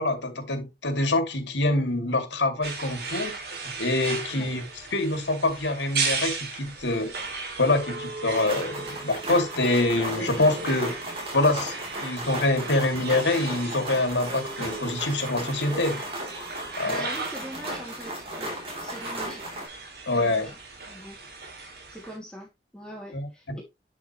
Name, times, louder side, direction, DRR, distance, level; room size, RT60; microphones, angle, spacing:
voice 1, 0.0-3.3 3.8-7.1 7.6-11.0 11.3-16.0 16.8-17.1 20.1-20.5 23.1-23.6, left 2 dB, 90° left, 2.7 m, -25 dB
sound 1, 2.6-22.2, right 4 dB, 60° right, 2.8 m, -36 dB
sound 2, 8.3-19.7, right 1 dB, 35° right, 3.5 m, -36 dB
voice 2, 16.8-18.6 18.8-19.5 20.1-20.6 20.9-21.2 21.6-23.6, equal, 5° left, 2.6 m, -42 dB
11.0 x 5.1 x 3.2 m
head